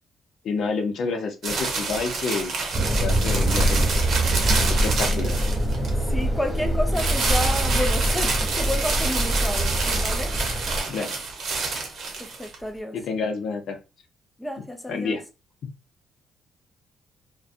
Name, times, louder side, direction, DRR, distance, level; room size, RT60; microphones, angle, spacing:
voice 1, 0.4-2.5 3.0-3.9 4.4-5.4 10.9-11.2 12.9-13.7 14.9-15.2, left 4 dB, 70° left, 0.6 m, -29 dB
sound 1, 1.4-6.0 6.9-12.5, right 4 dB, 65° right, 0.8 m, -28 dB
sound 2, 2.7-10.8, right 1 dB, 25° right, 1.0 m, -24 dB
voice 2, 6.1-10.4 12.2-13.0 14.4-15.2, left 1 dB, 10° left, 0.5 m, -30 dB
2.5 x 2.2 x 2.4 m
cardioid pair, 90°, 0 cm